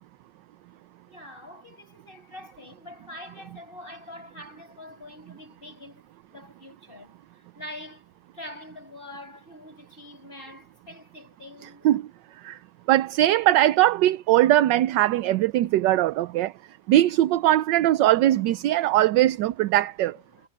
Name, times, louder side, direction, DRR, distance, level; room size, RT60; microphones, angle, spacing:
voice 1, 1.1-6.0 6.3-11.9 20.0-20.5, left 1 dB, 25° left, 6.6 m, -44 dB
voice 2, 12.9-16.5 16.9-20.1, right 14 dB, 75° right, 1.2 m, -20 dB
omnidirectional pair, 2.1 m